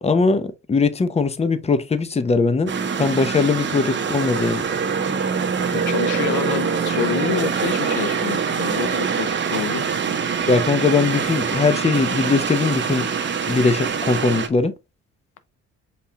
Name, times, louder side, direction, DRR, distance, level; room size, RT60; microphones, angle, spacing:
voice 1, 0.0-4.6 10.5-13.1 13.5-14.7, left 4 dB, 20° left, 0.7 m, -20 dB
sound 1, 2.7-14.5, right 6 dB, 40° right, 1.0 m, -24 dB
voice 2, 5.7-9.9, left 10 dB, 80° left, 0.6 m, -28 dB
5.4 x 4.2 x 2.3 m
cardioid pair, 90°, 30 cm